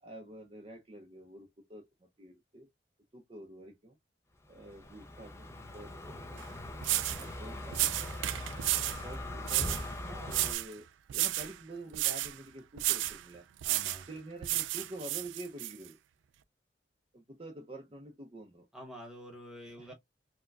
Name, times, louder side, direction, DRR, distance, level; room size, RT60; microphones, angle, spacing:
voice 1, 0.0-2.7 3.1-4.0 4.5-6.5 7.2-8.1 9.0-13.5 14.0-16.0 17.1-18.7 19.8-19.9, right 1 dB, 30° right, 0.6 m, -48 dB
Car passing by, 4.5-10.5, left 1 dB, 15° left, 0.5 m, -41 dB
sound 1, 6.4-6.5 6.8-7.3 7.7-9.0 9.5-9.9 10.3-10.7 11.1-11.5 11.9-12.3 12.8-13.2 13.6-14.0 14.4-15.7, right 15 dB, 85° right, 0.3 m, -32 dB
voice 2, 13.6-14.1 18.7-19.9, equal, 5° right, 1.0 m, -47 dB
4.5 x 2.2 x 2.3 m
head